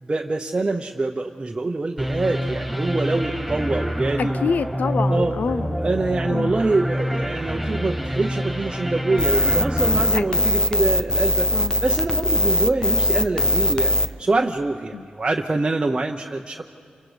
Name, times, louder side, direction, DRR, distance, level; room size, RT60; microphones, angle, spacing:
voice 1, 0.0-4.4 5.1-5.4 5.8-11.5 11.8-13.9 14.2-16.7, right 3 dB, 30° right, 1 dB, 0.8 m, -24 dB
sound 1, 2.0-11.0, equal, ahead, 5.1 m, -27 dB
voice 2, 4.2-5.8 6.3-6.5 10.1-10.2 11.5-11.8 14.9-15.1, left 5 dB, 70° left, 13 dB, 0.6 m, -26 dB
sound 2, 9.2-14.1, left 1 dB, 25° left, 0.6 m, -20 dB
29.5 x 26.0 x 3.4 m, 2.3 s
cardioid pair, 80°, 3 cm